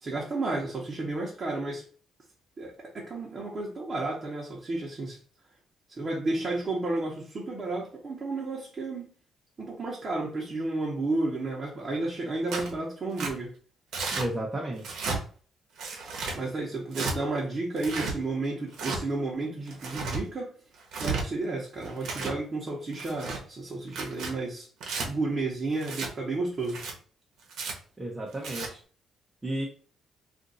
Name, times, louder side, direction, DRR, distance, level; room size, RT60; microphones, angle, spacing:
voice 1, 0.0-1.8 2.6-5.2 5.9-9.1 9.6-13.5 16.3-20.5 21.0-24.7 25.1-26.8, right 2 dB, 40° right, -3 dB, 1.0 m, -32 dB
Tearing, 12.5-12.7 13.2-13.3 13.9-14.3 14.8-15.2 15.8-16.4 16.9-17.1 17.8-18.1 18.7-19.0 19.7-20.2 20.8-21.2 21.8-22.4 22.9-23.4 23.9-24.3 24.8-25.1 25.8-26.1 26.6-26.9 27.5-27.7 28.3-28.7, right 4 dB, 75° right, 1.0 m, -33 dB
voice 2, 14.1-15.0 28.0-28.8 29.4-29.7, right 1 dB, 20° right, -2 dB, 0.8 m, -33 dB
2.6 x 2.6 x 3.9 m, 0.42 s
cardioid pair, 90°, 0 cm